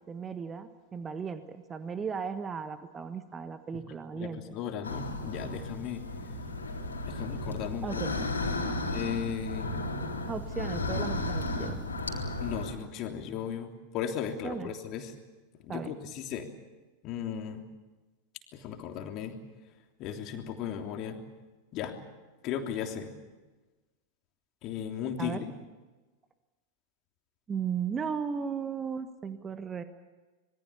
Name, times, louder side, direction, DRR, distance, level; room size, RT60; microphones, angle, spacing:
voice 1, 0.1-4.5 7.8-8.1 10.3-11.8 14.4-14.7 15.7-15.9 25.2-25.4 27.5-29.8, right 6 dB, 20° right, 10 dB, 1.4 m, -36 dB
voice 2, 4.1-6.1 7.1-7.9 8.9-9.7 12.4-15.1 15.6-16.5 17.0-17.6 18.5-19.4 20.0-21.2 21.7-22.0 22.4-23.1 24.6-25.5, left 8 dB, 40° left, 4 dB, 3.2 m, -36 dB
sound 1, 4.8-12.7, left 2 dB, 75° left, 3.7 m, -34 dB
26.0 x 22.5 x 7.1 m, 1.2 s
figure-of-eight pair, 90°, 0 cm